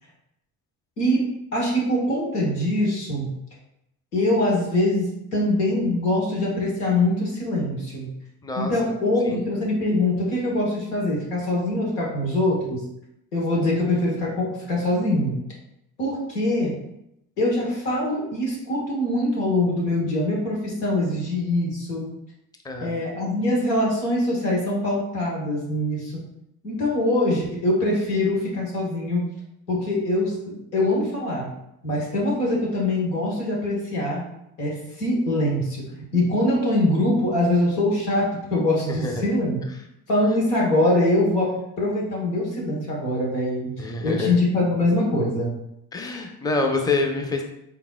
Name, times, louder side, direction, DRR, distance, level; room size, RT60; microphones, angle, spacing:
voice 1, 1.0-3.3 4.1-8.1 8.6-12.8 13.3-15.4 16.0-16.8 17.4-22.1 22.8-26.1 26.6-29.2 29.7-31.5 31.8-34.2 34.6-39.6 40.1-43.7 44.0-45.5, left 1 dB, 90° left, -3 dB, 1.1 m, -23 dB
voice 2, 22.6-23.0 38.9-39.2 43.8-44.4 45.9-47.5, left 3 dB, 10° left, 3 dB, 0.6 m, -26 dB
4.3 x 3.9 x 2.2 m, 0.80 s
hypercardioid pair, 50°, 46 cm